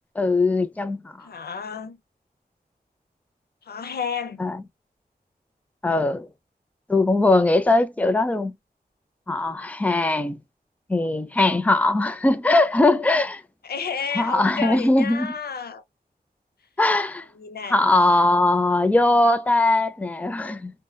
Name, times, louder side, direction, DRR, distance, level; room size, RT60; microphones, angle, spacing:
voice 1, 0.2-1.3 4.4-4.6 5.8-6.3 6.9-8.5 9.3-10.4 10.9-13.4 14.1-15.3 16.8-17.2 17.7-20.7, left 2 dB, 10° left, 0.4 m, -20 dB
voice 2, 1.2-2.0 3.7-4.4 13.6-15.8 17.4-17.8, left 6 dB, 75° left, 0.5 m, -31 dB
2.7 x 2.1 x 2.2 m
wide cardioid pair, 85°, 16 cm